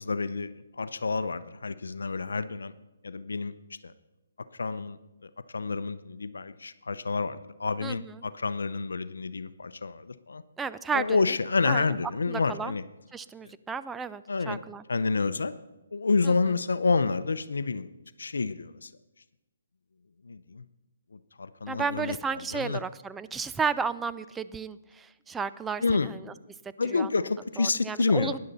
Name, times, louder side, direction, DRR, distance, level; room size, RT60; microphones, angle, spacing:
voice 1, 0.0-2.7 3.0-3.5 3.8-3.9 4.6-5.0 5.2-10.4 10.9-12.8 13.4-13.5 14.3-14.6 14.9-15.5 15.9-17.9 18.2-18.9 20.2-20.6 21.1-22.2 22.5-22.8 25.8-26.1 26.8-28.4, left 4 dB, 80° left, 14 dB, 0.6 m, -29 dB
voice 2, 7.8-8.2 10.6-11.2 11.6-11.9 12.3-12.7 13.1-14.8 16.2-16.3 21.7-26.3 26.9-27.1 27.6-28.4, right 5 dB, 10° right, 14 dB, 0.3 m, -33 dB
12.5 x 10.5 x 4.1 m, 1.0 s
hypercardioid pair, 150°, 0 cm